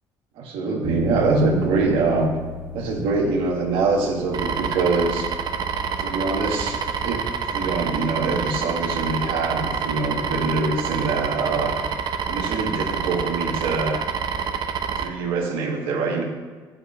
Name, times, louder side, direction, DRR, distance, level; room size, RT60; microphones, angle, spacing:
voice 1, 0.3-2.3 2.7-5.3 6.0-6.8 7.0-7.2 7.5-11.8 12.3-14.0 15.0-16.2, right 3 dB, 85° right, 0 dB, 1.6 m, -24 dB
sound 1, 0.8-10.6, left 3 dB, 25° right, 1.6 m, -37 dB
sound 2, 4.3-15.1, right 6 dB, 55° right, 0.7 m, -27 dB
7.5 x 5.9 x 6.7 m, 1.5 s
cardioid pair, 100°, 9 cm